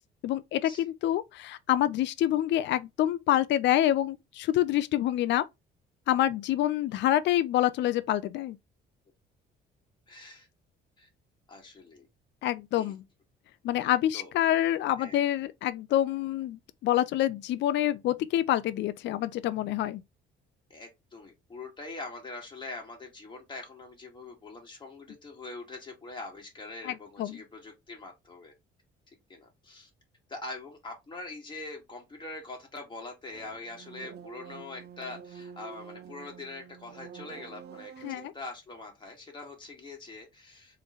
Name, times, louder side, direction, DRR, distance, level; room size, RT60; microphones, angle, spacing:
voice 1, 0.2-5.5 6.1-8.6 12.4-13.0 13.6-20.0 26.8-27.4 38.0-38.3, left 12 dB, 65° left, 0.4 m, -27 dB
voice 2, 10.1-10.5 11.0-11.1 11.5-12.1 12.8-12.9 13.8-14.3 15.0-15.2 20.7-28.5 29.3-29.9 30.3-40.8, left 2 dB, 25° left, 2.1 m, -43 dB
sound 1, 33.3-38.3, right 7 dB, 55° right, 0.8 m, -47 dB
3.5 x 3.2 x 3.9 m
cardioid pair, 105°, 20 cm